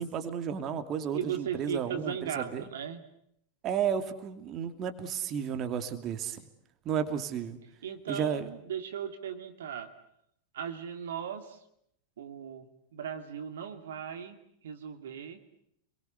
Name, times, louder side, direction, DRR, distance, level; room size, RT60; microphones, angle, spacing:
voice 1, 0.0-2.6 3.6-6.4 6.8-7.6 8.1-8.4, right 8 dB, 30° right, 8 dB, 2.7 m, -33 dB
voice 2, 1.1-3.0 7.8-9.9 10.5-11.6 12.2-15.4, right 8 dB, 60° right, 7 dB, 2.4 m, -37 dB
29.0 x 23.0 x 8.0 m, 0.74 s
figure-of-eight pair, 90°, 0 cm